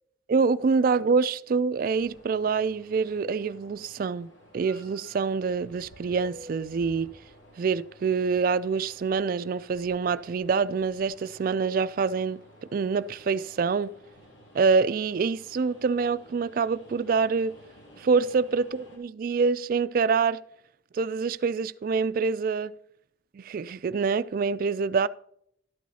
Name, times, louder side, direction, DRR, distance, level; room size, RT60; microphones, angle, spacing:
voice 1, 0.3-7.2 7.6-12.4 12.7-13.9 14.5-17.6 18.0-20.4 20.9-22.7 23.3-25.1, right 5 dB, 50° right, 0.3 m, -26 dB
sound 1, 1.9-19.0, equal, 80° left, 2.8 m, -53 dB
12.5 x 9.2 x 2.8 m
head